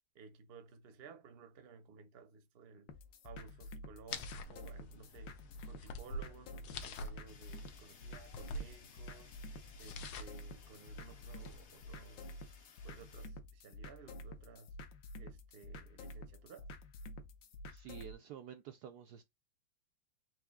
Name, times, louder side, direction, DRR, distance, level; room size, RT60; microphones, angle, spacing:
voice 1, 0.1-2.9 3.2-5.3 5.7-12.4 12.8-14.7 15.2-16.7, right 5 dB, 55° right, 0.6 m, -56 dB
sound 1, 2.9-18.1, left 1 dB, 70° left, 1.4 m, -50 dB
sound 2, 4.1-11.8, left 2 dB, 85° left, 1.7 m, -48 dB
Fire, 7.3-13.3, left 5 dB, 50° left, 0.9 m, -63 dB
voice 2, 17.7-19.2, right 9 dB, 90° right, 0.8 m, -50 dB
4.8 x 2.7 x 3.6 m
omnidirectional pair, 2.3 m